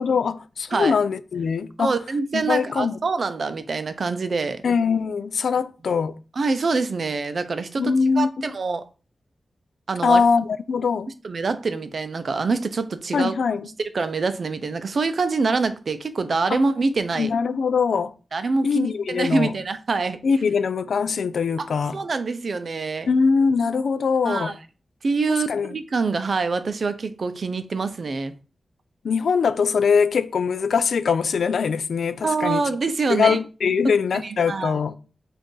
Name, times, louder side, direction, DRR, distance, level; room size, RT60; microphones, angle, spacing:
voice 1, 0.0-1.9 2.3-3.0 4.6-6.2 7.8-8.3 10.0-11.1 13.1-13.7 16.5-16.6 17.2-18.1 18.6-19.5 20.2-22.0 23.1-24.5 25.5-25.7 29.0-32.6 33.1-34.9, left 5 dB, 85° left, 0.3 m, -22 dB
voice 2, 1.8-4.6 6.4-8.8 9.9-10.2 11.2-13.3 13.8-17.3 18.3-20.2 21.6-21.7 21.9-23.1 24.2-24.5 25.0-28.3 32.2-33.4 34.5-34.7, right 4 dB, 55° right, 0.5 m, -25 dB
5.0 x 2.5 x 3.8 m
wide cardioid pair, 110°, 0 cm